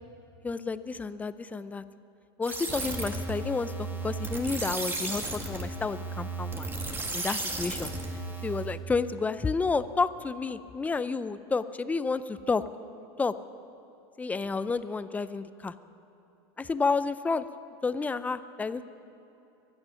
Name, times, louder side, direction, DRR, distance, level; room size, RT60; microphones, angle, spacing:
voice 1, 0.4-1.8 2.4-6.7 7.1-7.9 8.4-12.6 12.9-13.3 14.2-15.7 16.6-17.5 17.8-18.8, left 4 dB, 10° left, 13 dB, 0.5 m, -30 dB
sound 1, 2.4-8.8, right 2 dB, 15° right, 1.7 m, -34 dB
24.0 x 9.8 x 5.7 m, 2.9 s
supercardioid pair, 120°, 14 cm